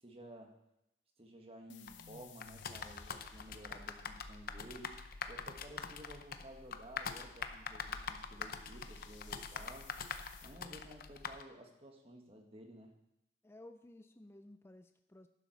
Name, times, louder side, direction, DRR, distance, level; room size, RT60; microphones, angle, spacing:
voice 1, 0.0-0.5 1.2-4.9 5.3-9.9 10.4-12.9, right 1 dB, 30° right, 2 dB, 1.5 m, -54 dB
sound 1, 1.7-10.6, left 3 dB, 80° left, 0.8 m, -56 dB
sound 2, 1.9-11.4, left 6 dB, 50° left, 0.7 m, -44 dB
voice 2, 13.4-15.3, left 1 dB, 15° left, 8 dB, 0.4 m, -56 dB
11.0 x 7.1 x 5.9 m, 0.85 s
head